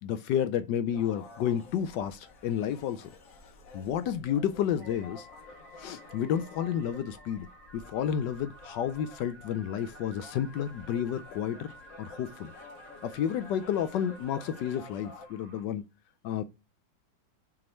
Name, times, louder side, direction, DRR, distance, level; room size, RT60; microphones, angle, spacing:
voice 1, 0.0-3.1 3.7-5.3 5.8-7.5 7.7-11.7 12.0-12.5 13.0-15.9 16.2-16.4, left 9 dB, 75° left, 1.1 m, -31 dB
sound 1, 0.9-15.3, left 3 dB, 50° left, 1.2 m, -51 dB
sound 2, 4.8-15.7, right 1 dB, 60° right, 2.4 m, -53 dB
6.0 x 3.7 x 4.4 m
omnidirectional pair, 2.2 m